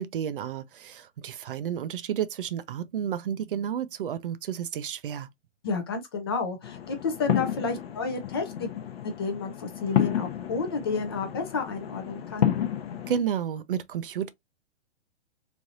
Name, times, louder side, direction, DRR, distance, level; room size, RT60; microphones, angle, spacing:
voice 1, 0.0-5.3 13.1-14.3, right 9 dB, 50° right, 0.4 m, -31 dB
voice 2, 5.6-8.7 9.0-12.5, left 4 dB, 25° left, 0.4 m, -31 dB
sound 1, 6.6-13.2, left 10 dB, 60° left, 0.7 m, -31 dB
3.2 x 2.6 x 2.6 m
hypercardioid pair, 150°, 34 cm